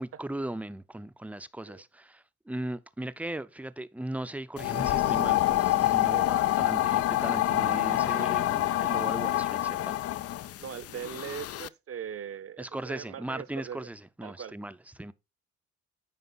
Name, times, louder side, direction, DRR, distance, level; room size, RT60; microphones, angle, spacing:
voice 1, 0.0-9.9 12.6-15.1, right 1 dB, 5° right, 0.6 m, -38 dB
sound 1, 4.6-11.7, left 14 dB, 55° left, 0.4 m, -27 dB
voice 2, 10.6-13.9 14.2-14.5, right 8 dB, 50° right, 0.8 m, -40 dB
9.5 x 5.3 x 4.0 m
cardioid pair, 90°, 30 cm